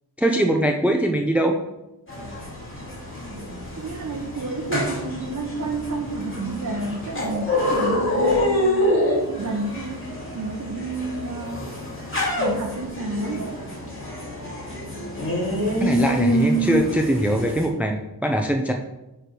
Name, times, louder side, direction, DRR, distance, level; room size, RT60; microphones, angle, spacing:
voice 1, 0.2-1.6 15.8-18.7, right 1 dB, 5° right, 3 dB, 0.6 m, -22 dB
sound 1, 2.1-17.7, left 1 dB, 30° left, 2.7 m, -26 dB
voice 2, 3.7-9.0 9.4-11.8 12.4-13.5, right 2 dB, 50° right, 1 dB, 0.9 m, -31 dB
9.4 x 3.4 x 6.1 m, 0.96 s
wide cardioid pair, 90°, 39 cm